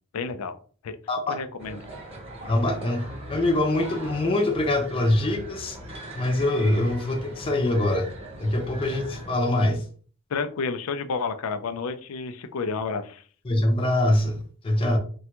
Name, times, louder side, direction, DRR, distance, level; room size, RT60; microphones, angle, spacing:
voice 1, 0.1-0.6 0.8-1.0 1.3-1.8 10.3-13.2, left 4 dB, 85° left, 9 dB, 0.4 m, -30 dB
sound 1, 1.6-9.3, right 1 dB, 30° right, 0.8 m, -40 dB
voice 2, 2.5-5.8 6.1-8.1 8.4-9.8 13.4-15.0, left 1 dB, 25° left, 3 dB, 0.4 m, -24 dB
3.3 x 2.3 x 2.9 m, 0.42 s
head